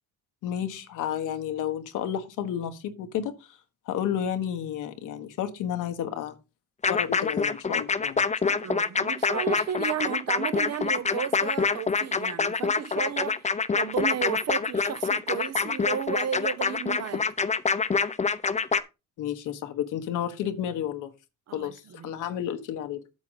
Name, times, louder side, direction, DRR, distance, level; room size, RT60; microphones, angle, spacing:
voice 1, 0.4-3.6 3.9-6.4 6.9-8.6 19.2-21.1 21.5-23.0, left 9 dB, 85° left, 1.3 m, -31 dB
sound 1, 6.8-18.8, left 5 dB, 25° left, 0.7 m, -26 dB
voice 2, 8.5-17.3 21.5-22.1, right 9 dB, 55° right, 0.8 m, -33 dB
8.6 x 6.5 x 4.0 m
cardioid pair, 90°, 30 cm